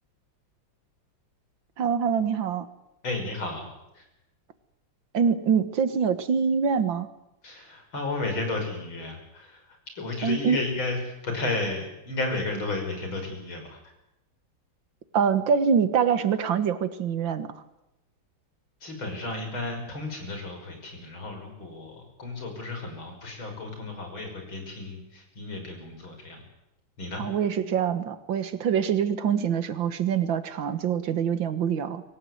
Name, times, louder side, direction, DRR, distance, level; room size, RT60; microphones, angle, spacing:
voice 1, 1.8-2.7 5.1-7.1 10.2-10.6 15.1-17.5 27.2-32.0, right 7 dB, 70° right, 11 dB, 2.2 m, -24 dB
voice 2, 3.0-3.7 7.4-9.5 10.0-11.0 11.2-13.7 18.8-26.4 27.0-27.2, left 2 dB, 85° left, 4 dB, 6.5 m, -33 dB
25.0 x 16.5 x 9.6 m, 0.92 s
omnidirectional pair, 2.2 m